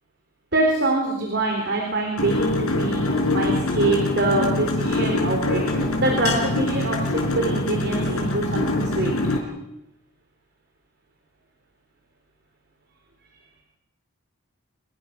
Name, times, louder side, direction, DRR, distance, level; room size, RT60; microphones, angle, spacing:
voice 1, 0.5-9.1, right 2 dB, 50° right, 2 dB, 4.0 m, -25 dB
sound 1, 2.2-9.4, left 2 dB, 85° left, 4.8 m, -24 dB
26.0 x 21.0 x 6.0 m, 0.89 s
head